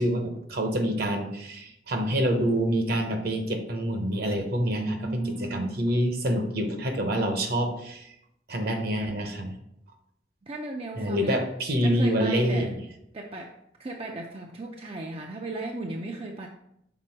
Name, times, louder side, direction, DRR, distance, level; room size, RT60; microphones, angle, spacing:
voice 1, 0.0-8.1 8.5-9.5 11.0-12.7, equal, 60° right, 5 dB, 1.0 m, -26 dB
voice 2, 4.7-5.8 10.4-11.4 11.8-12.8 13.1-13.5 13.8-16.5, right 2 dB, 35° right, 1 dB, 0.5 m, -35 dB
6.0 x 4.2 x 4.4 m, 0.76 s
head